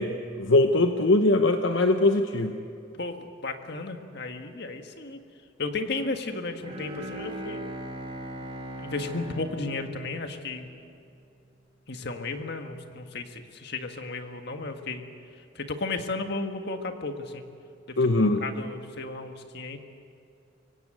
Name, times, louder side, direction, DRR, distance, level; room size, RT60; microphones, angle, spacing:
voice 1, 0.0-2.5 18.0-18.4, left 2 dB, 75° left, 6 dB, 1.0 m, -22 dB
voice 2, 2.9-5.2 5.6-7.6 8.8-10.7 11.9-15.0 15.5-17.4 17.9-18.0 18.4-19.8, left 3 dB, 60° left, 6 dB, 1.7 m, -34 dB
Bowed string instrument, 6.6-10.9, right 1 dB, 30° right, 4.0 m, -39 dB
25.0 x 16.5 x 9.3 m, 2.6 s
head